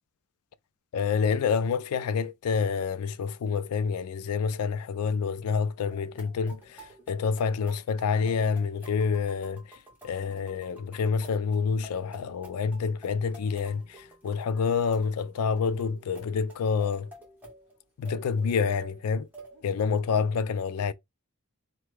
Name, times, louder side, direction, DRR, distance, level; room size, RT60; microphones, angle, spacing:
voice 1, 0.9-9.8 10.0-17.1 18.0-19.3 19.6-20.9, left 5 dB, 80° left, 0.4 m, -28 dB
sound 1, 5.9-20.3, equal, 10° right, 1.3 m, -51 dB
3.2 x 2.2 x 3.2 m
head